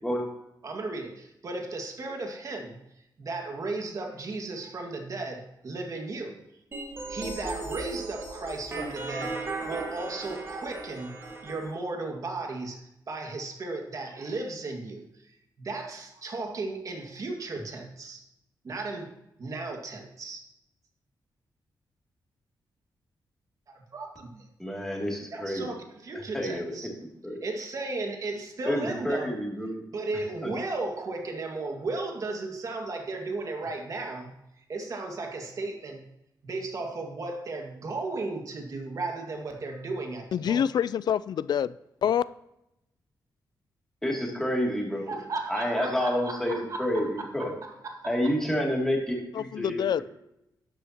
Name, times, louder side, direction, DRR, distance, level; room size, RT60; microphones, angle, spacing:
voice 1, 0.6-2.8 3.2-6.4 7.1-11.1 11.4-18.2 18.6-19.1 19.4-20.4 23.7-24.5 25.3-26.9 27.4-29.4 29.9-36.0 36.4-40.6 45.1-48.1, right 3 dB, 45° right, 2.0 m, -35 dB
sound 1, 6.7-11.7, right 3 dB, 30° right, 1.7 m, -36 dB
voice 2, 24.6-25.7 26.3-26.9 27.2-27.4 28.7-29.8 30.4-30.5 44.0-45.1 45.5-47.1 47.3-47.5 48.0-50.0, equal, 5° left, 2.7 m, -29 dB
voice 3, 40.3-41.7 42.0-42.2 49.3-50.0, left 9 dB, 65° left, 0.4 m, -26 dB
12.0 x 10.5 x 2.9 m
wide cardioid pair, 140°, 8 cm